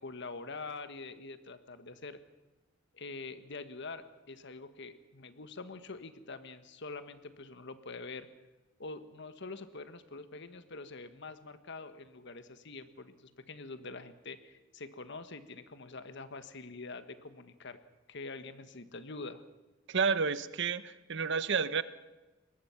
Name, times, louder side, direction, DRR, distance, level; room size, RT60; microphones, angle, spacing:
voice 1, 0.0-2.2 2.9-8.3 8.8-17.8 18.1-19.4, left 3 dB, 65° left, 11 dB, 1.4 m, -45 dB
voice 2, 19.9-21.8, right 5 dB, 65° right, 14 dB, 0.9 m, -30 dB
23.0 x 19.5 x 5.9 m, 1.1 s
head